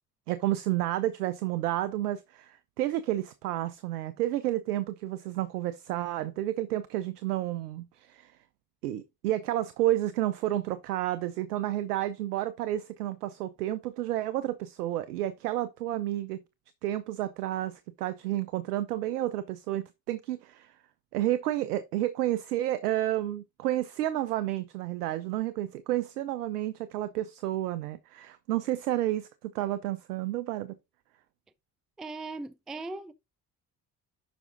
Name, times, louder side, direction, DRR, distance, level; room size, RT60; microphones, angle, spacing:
voice 1, 0.3-8.3 8.8-16.4 16.8-20.7 21.1-30.8, right 14 dB, 75° right, 0.6 m, -31 dB
voice 2, 32.0-33.1, right 3 dB, ahead, 0.3 m, -38 dB
11.5 x 5.0 x 2.5 m
figure-of-eight pair, 45°, 46 cm